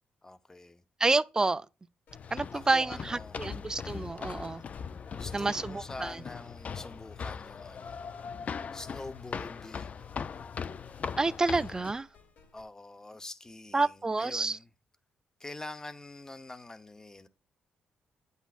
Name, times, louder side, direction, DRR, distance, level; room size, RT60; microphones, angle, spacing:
voice 1, 0.2-0.8 2.5-3.4 5.1-8.0 8.7-10.1 12.5-14.7 15.4-17.3, left 2 dB, 20° left, 0.8 m, -45 dB
voice 2, 1.0-1.7 2.3-4.6 5.3-6.2 11.2-12.1 13.7-14.6, right 3 dB, 20° right, 0.4 m, -29 dB
sound 1, 2.1-12.6, left 4 dB, 70° left, 2.6 m, -61 dB
sound 2, 2.1-11.9, left 6 dB, 45° left, 0.5 m, -40 dB
9.1 x 8.1 x 2.5 m
cardioid pair, 90°, 3 cm